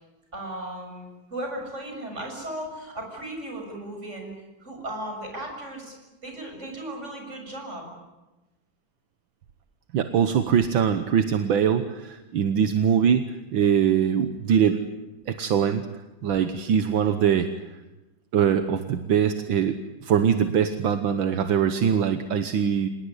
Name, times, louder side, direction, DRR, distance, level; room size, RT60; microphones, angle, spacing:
voice 1, 0.3-4.3 4.6-6.0 6.2-7.9, right 1 dB, 35° right, 2 dB, 7.2 m, -36 dB
voice 2, 9.9-14.8 15.3-15.9 16.2-17.5 18.3-22.9, right 8 dB, 75° right, 9 dB, 1.8 m, -22 dB
27.0 x 19.5 x 9.8 m, 1.0 s
omnidirectional pair, 2.2 m